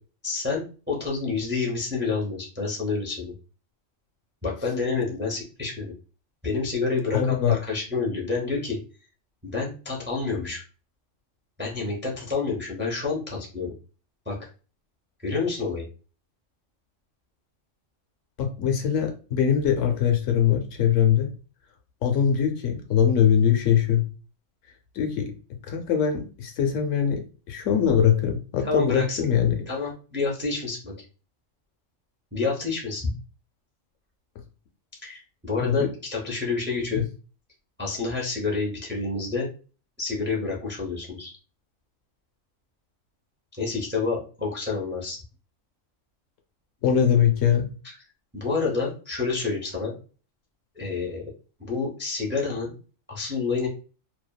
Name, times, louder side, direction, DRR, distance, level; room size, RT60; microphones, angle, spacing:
voice 1, 0.2-3.3 4.4-5.9 6.4-8.8 9.4-10.6 11.6-13.7 14.3-14.4 15.2-15.8 28.6-29.3 29.7-30.9 32.3-33.1 35.0-37.0 37.8-39.5 40.0-41.3 43.6-45.2 48.3-49.9 50.7-51.2 51.6-52.7 53.1-53.7, left 4 dB, 15° right, -3 dB, 0.4 m, -28 dB
voice 2, 7.1-7.6 18.4-21.3 22.0-24.0 25.0-25.3 25.7-27.2 27.5-29.6 35.6-35.9 37.0-37.1 46.8-47.7, left 8 dB, 75° left, 4 dB, 0.9 m, -22 dB
2.7 x 2.3 x 2.2 m, 0.36 s
omnidirectional pair, 1.4 m